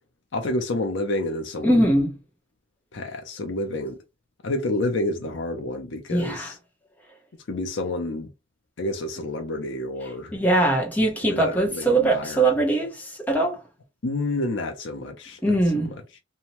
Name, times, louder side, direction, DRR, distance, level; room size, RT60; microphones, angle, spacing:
voice 1, 0.3-1.9 2.9-4.0 4.4-6.6 7.5-8.3 8.8-10.3 11.2-12.6 14.0-16.2, left 2 dB, 75° left, 0.6 m, -29 dB
voice 2, 1.6-2.1 6.1-6.5 10.3-13.6 15.4-15.9, right 2 dB, 10° left, 0.8 m, -21 dB
2.8 x 2.1 x 2.9 m
head